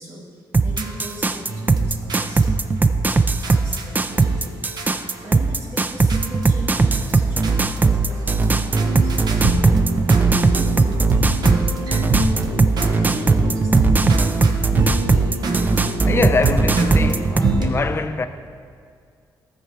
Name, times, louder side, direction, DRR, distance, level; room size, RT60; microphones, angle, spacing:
voice 1, 0.0-2.4 3.4-4.7 5.2-9.2 13.0-14.0, right 2 dB, 40° right, 2.0 m, -36 dB
sound 1, 0.5-17.4, right 3 dB, 20° right, 0.4 m, -19 dB
sound 2, 0.8-5.8 6.1-6.5 6.7-17.7, right 2 dB, 60° right, 1.0 m, -25 dB
voice 2, 16.0-18.3, left 4 dB, 30° left, 0.5 m, -23 dB
13.5 x 4.6 x 4.7 m
cardioid pair, 105°, 8 cm